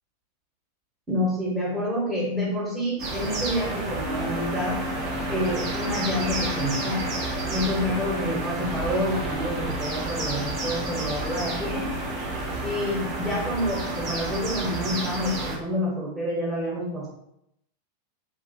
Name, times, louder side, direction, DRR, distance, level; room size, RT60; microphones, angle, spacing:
voice 1, 1.1-4.8 5.3-7.0 7.5-11.9 12.6-17.1, left 1 dB, 15° right, -5 dB, 1.0 m, -28 dB
sound 1, 3.0-15.6, right 2 dB, 40° right, 0.7 m, -31 dB
sound 2, 4.0-15.5, left 3 dB, 35° left, 0.6 m, -38 dB
3.0 x 2.3 x 2.8 m, 0.79 s
figure-of-eight pair, 90°, 0 cm